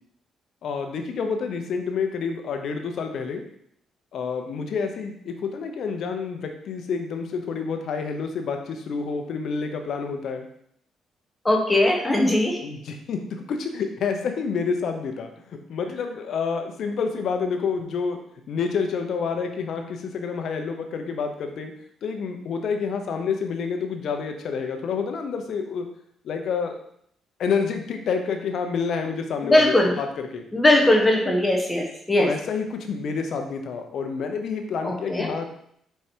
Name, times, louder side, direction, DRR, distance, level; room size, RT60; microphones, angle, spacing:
voice 1, 0.6-3.4 4.1-10.5 12.6-15.3 15.7-18.2 18.5-21.7 22.0-25.9 26.2-26.8 27.4-30.1 30.3-30.4 32.2-35.5, left 5 dB, 65° left, 5 dB, 0.9 m, -28 dB
voice 2, 11.4-12.6 29.4-30.0 30.5-32.3 34.8-35.3, left 1 dB, 15° left, 0 dB, 1.1 m, -20 dB
4.7 x 4.6 x 4.5 m, 0.70 s
cardioid pair, 90°, 0 cm